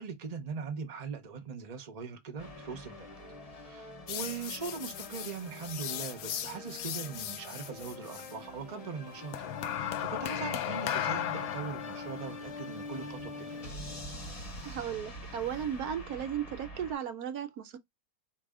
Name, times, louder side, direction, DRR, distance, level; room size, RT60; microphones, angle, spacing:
voice 1, 0.0-3.1 3.6-13.5, right 5 dB, 30° right, 0.8 m, -41 dB
sound 1, 2.4-17.0, left 2 dB, 30° left, 0.9 m, -45 dB
sound 2, 4.1-8.4 9.3-14.7, left 11 dB, 75° left, 1.0 m, -37 dB
voice 2, 14.6-17.8, right 9 dB, 80° right, 1.2 m, -35 dB
4.6 x 2.7 x 3.6 m
omnidirectional pair, 1.6 m